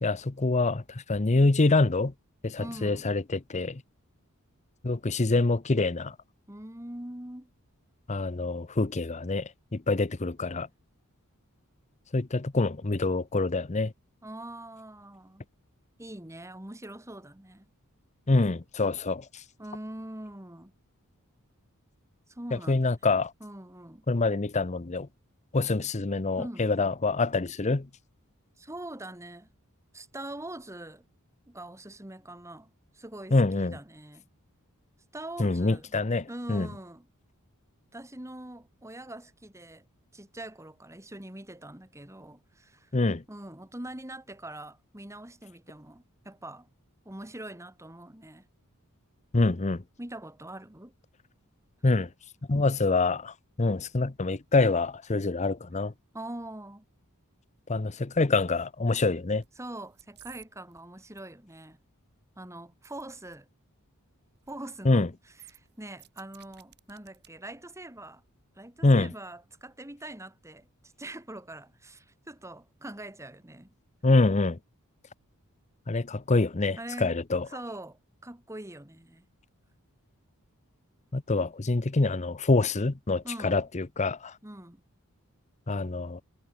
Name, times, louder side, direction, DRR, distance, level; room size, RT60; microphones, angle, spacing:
voice 1, 0.0-2.1 2.4-3.8 4.8-6.2 8.1-10.7 12.1-13.9 18.3-19.4 22.5-23.3 24.1-25.1 25.5-27.9 33.3-33.8 35.4-36.7 42.9-43.2 49.3-49.8 51.8-52.1 52.5-55.9 57.7-59.4 64.8-65.1 68.8-69.1 74.0-74.6 75.9-77.5 81.1-84.4 85.7-86.2, left 3 dB, 30° left, 0.8 m, -26 dB
voice 2, 2.6-3.1 6.5-7.5 14.2-15.4 16.0-17.7 19.6-20.7 22.3-22.9 23.4-24.0 26.4-26.7 28.6-29.5 29.9-31.0 31.5-34.3 35.1-35.8 36.3-37.1 37.9-39.9 40.1-42.9 43.3-46.7 47.0-48.5 50.0-50.9 56.1-56.8 59.6-61.8 62.4-63.5 64.5-65.1 65.5-68.2 68.5-73.7 76.8-77.2 77.5-79.3 83.2-83.6 84.4-84.8, right 1 dB, 15° right, 2.2 m, -43 dB
sound 1, 59.4-59.7 59.9-60.5 60.7-61.2 62.8-63.0 63.3-63.4 64.3-64.6 64.9-65.0 65.3-67.3 67.6-67.7, right 12 dB, 50° right, 2.2 m, -54 dB
head